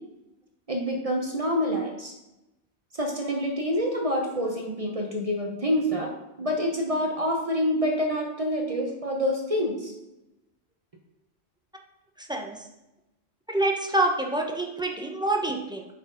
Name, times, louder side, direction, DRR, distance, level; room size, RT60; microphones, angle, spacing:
voice 1, 0.7-2.1 2.9-6.1 6.4-9.9, equal, 35° right, 1 dB, 0.7 m, -27 dB
voice 2, 12.2-12.6 13.5-15.9, right 2 dB, 5° right, 1 dB, 0.5 m, -26 dB
5.3 x 4.4 x 5.0 m, 0.92 s
omnidirectional pair, 1.1 m